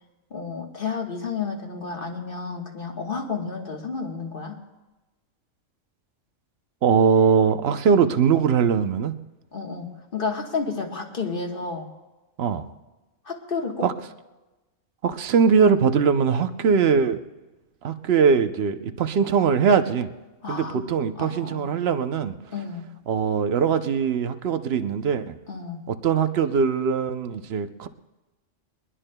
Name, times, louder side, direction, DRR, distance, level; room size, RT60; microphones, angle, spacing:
voice 1, 0.3-4.6 9.5-11.9 13.2-13.9 20.4-20.8 21.2-21.8 22.5-22.9 25.5-25.8, left 4 dB, 45° left, 2 dB, 1.5 m, -31 dB
voice 2, 6.8-9.2 12.4-12.7 13.8-13.9 15.0-17.2 17.8-20.1 20.5-22.3 23.1-25.4 25.9-27.9, right 6 dB, 60° right, 10 dB, 0.9 m, -21 dB
21.5 x 21.0 x 2.2 m, 1.1 s
omnidirectional pair, 1.3 m